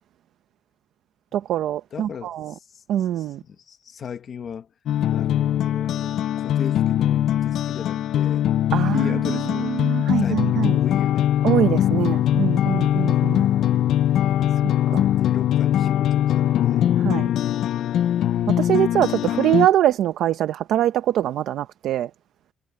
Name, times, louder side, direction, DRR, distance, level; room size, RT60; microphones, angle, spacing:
voice 1, 1.3-2.5 2.9-3.4 8.7-9.0 9.7-10.8 11.4-13.5 14.9-15.1 17.0-17.3 18.6-22.1, right 11 dB, 55° right, 0.7 m, -23 dB
voice 2, 1.9-4.7 5.1-8.5 8.7-9.7 10.2-11.9 14.9-16.8 19.2-19.4, left 7 dB, 35° left, 1.3 m, -37 dB
sound 1, 4.9-19.7, left 11 dB, 55° left, 0.5 m, -21 dB
cardioid pair, 175°, 0 cm